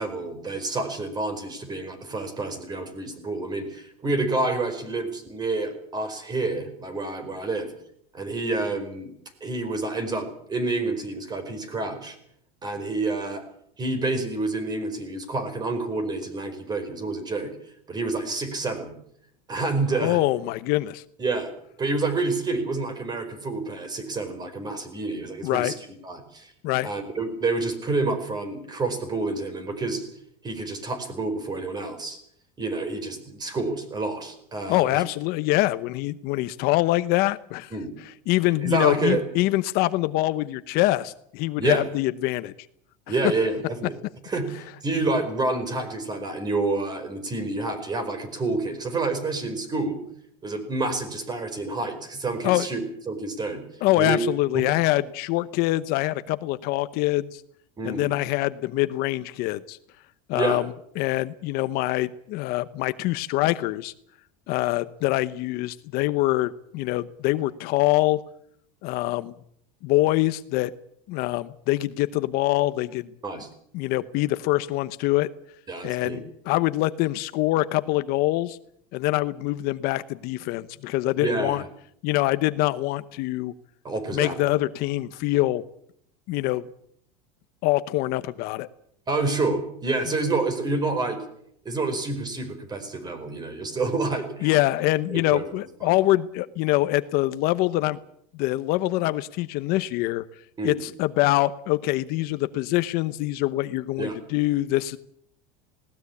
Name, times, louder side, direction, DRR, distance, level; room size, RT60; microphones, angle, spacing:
voice 1, 0.0-7.7 8.1-9.1 9.4-12.2 12.6-13.4 13.8-17.5 17.9-18.9 19.5-20.2 21.2-21.5 21.8-25.7 26.0-26.5 26.8-30.1 30.4-32.2 32.6-35.0 37.7-37.9 38.6-39.2 41.6-41.8 43.1-43.9 44.2-50.0 50.4-53.6 54.0-54.2 54.5-54.8 57.8-58.1 60.3-60.6 73.2-73.5 75.7-76.2 81.1-81.7 83.8-84.5 89.1-91.2 91.6-94.6 95.1-95.5 95.8-95.9 100.6-100.8 104.0-104.2, right 3 dB, 20° right, 10 dB, 4.7 m, -28 dB
voice 2, 20.0-21.0 25.4-25.7 26.6-26.9 34.7-37.7 38.3-42.5 52.4-52.7 53.8-57.4 57.8-59.8 60.3-63.9 64.5-68.2 68.8-69.3 69.8-70.7 71.1-73.1 73.7-75.3 75.8-78.6 78.9-81.6 82.0-83.5 84.1-85.6 86.3-86.6 87.6-88.7 94.4-98.0 98.4-100.2 100.6-105.0, left 17 dB, 55° left, 14 dB, 0.9 m, -24 dB
20.0 x 18.5 x 8.5 m, 0.69 s
supercardioid pair, 135°, 19 cm